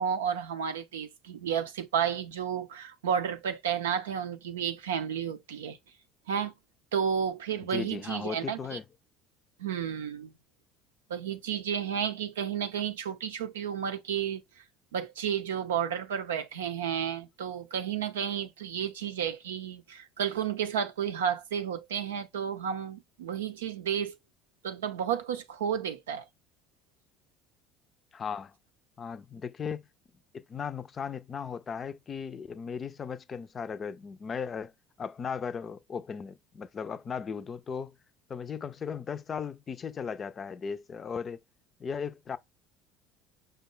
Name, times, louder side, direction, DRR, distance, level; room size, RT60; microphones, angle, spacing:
voice 1, 0.0-5.8 6.3-6.5 6.9-8.8 9.6-10.3 11.1-14.4 14.9-24.2 24.6-26.3, right 8 dB, 80° right, 0.5 m, -32 dB
voice 2, 7.7-8.8 28.1-28.5 29.0-29.8 30.3-34.7 35.0-38.0 38.3-41.4 41.8-42.4, left 6 dB, 35° left, 0.4 m, -37 dB
5.2 x 2.2 x 3.8 m
hypercardioid pair, 70°, 0 cm